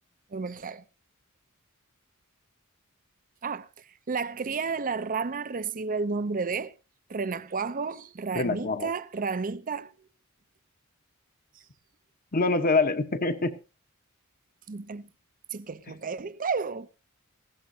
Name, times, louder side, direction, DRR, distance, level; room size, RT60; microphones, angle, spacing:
voice 1, 0.3-0.8 3.4-3.7 4.1-6.7 7.1-9.9 14.7-15.1 15.5-16.9, right 4 dB, 40° right, 0.6 m, -31 dB
voice 2, 8.3-8.9 12.3-13.5, left 3 dB, 40° left, 1.1 m, -25 dB
18.0 x 16.0 x 2.8 m
head